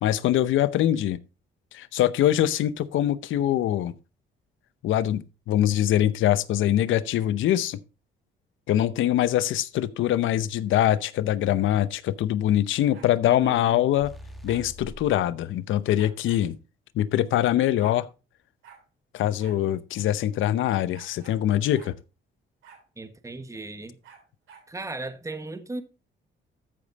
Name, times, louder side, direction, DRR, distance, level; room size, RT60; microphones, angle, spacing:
voice 1, 0.0-1.2 1.7-3.9 4.8-7.8 8.7-14.1 14.4-16.5 16.9-18.1 19.1-21.9, left 12 dB, 80° left, 0.7 m, -23 dB
sound 1, 12.9-13.8 14.5-14.7 16.0-16.4 17.3-17.4 17.6-18.0 18.6-18.8 19.4-19.6 19.9-20.0 20.9-21.4 21.7-21.9 22.6-22.8 24.0-24.7, right 7 dB, 80° right, 3.4 m, -51 dB
voice 2, 13.2-13.8 23.0-23.9 24.7-25.8, right 2 dB, 15° right, 1.3 m, -37 dB
sound 2, 14.0-15.2, equal, ahead, 1.5 m, -42 dB
13.5 x 5.2 x 4.0 m
cardioid pair, 90°, 20 cm